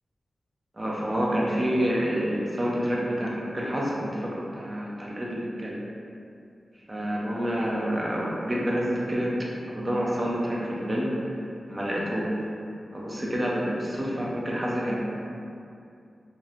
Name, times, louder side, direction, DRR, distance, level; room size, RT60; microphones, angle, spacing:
voice 1, 0.7-5.8 6.9-11.4 11.7-12.3 12.9-15.0, equal, 25° right, -5 dB, 0.4 m, -28 dB
2.9 x 2.0 x 2.4 m, 2.5 s
wide cardioid pair, 120°, 0 cm